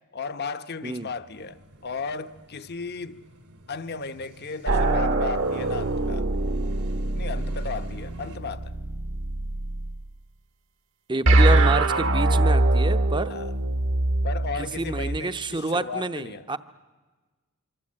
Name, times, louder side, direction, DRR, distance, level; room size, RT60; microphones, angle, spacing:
voice 1, 0.1-3.2 3.7-6.3 7.1-8.7 13.3-13.5 14.2-16.6, left 4 dB, 45° left, 1.0 m, -35 dB
sound 1, 1.3-8.4, right 1 dB, 80° right, 2.6 m, -50 dB
sound 2, 4.7-10.0 11.3-15.2, right 2 dB, 60° right, 1.3 m, -23 dB
voice 2, 11.1-13.3 14.5-16.6, right 2 dB, 20° right, 0.8 m, -28 dB
25.5 x 25.0 x 8.7 m
head